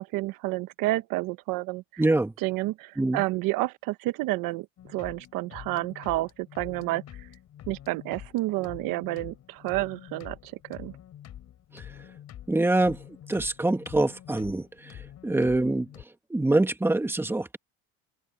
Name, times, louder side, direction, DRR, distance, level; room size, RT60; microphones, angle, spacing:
voice 1, 0.0-2.0 2.4-7.3 7.7-10.9, right 19 dB, 75° right, 1.2 m, -30 dB
voice 2, 2.0-2.3 3.0-3.2 11.7-11.9 12.5-13.0 13.3-16.0 16.3-17.6, right 2 dB, 5° right, 1.6 m, -25 dB
sound 1, 4.8-16.0, left 11 dB, 50° left, 3.9 m, -46 dB
open air
cardioid pair, 125°, 34 cm